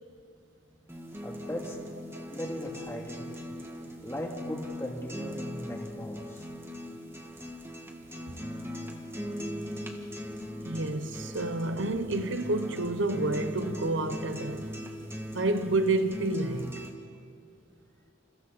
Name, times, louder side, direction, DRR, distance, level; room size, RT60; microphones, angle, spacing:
sound 1, 0.9-16.9, equal, 10° right, 1.8 m, -39 dB
voice 1, 1.2-1.8 2.3-3.3 4.0-6.4, equal, 15° left, 2.7 m, -38 dB
voice 2, 10.6-14.7 15.3-16.9, right 2 dB, 70° right, 1.0 m, -29 dB
29.0 x 29.0 x 4.2 m
head